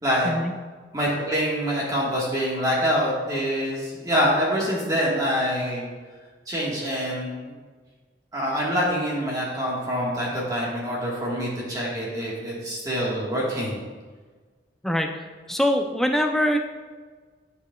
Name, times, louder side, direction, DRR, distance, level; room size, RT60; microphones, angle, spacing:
voice 1, 0.9-5.8 6.5-7.5 8.3-13.8, equal, 20° right, -5 dB, 1.4 m, -25 dB
voice 2, 15.5-16.6, equal, ahead, 3 dB, 0.4 m, -23 dB
11.0 x 4.9 x 2.3 m, 1.4 s
head